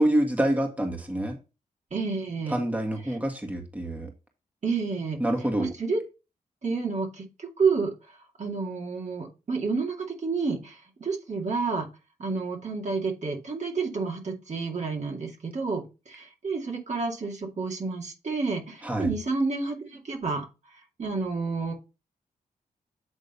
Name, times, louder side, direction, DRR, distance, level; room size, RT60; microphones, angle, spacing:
voice 1, 0.0-1.4 2.5-4.1 5.2-5.7 18.8-19.1, right 1 dB, 10° right, 3 dB, 1.8 m, -26 dB
voice 2, 1.9-2.6 3.1-3.2 4.6-5.2 5.6-6.0 6.6-7.9 8.4-11.9 12.2-20.5 21.0-21.7, right 4 dB, 55° right, 1 dB, 2.4 m, -30 dB
8.5 x 3.7 x 5.4 m, 0.29 s
cardioid pair, 75°, 15 cm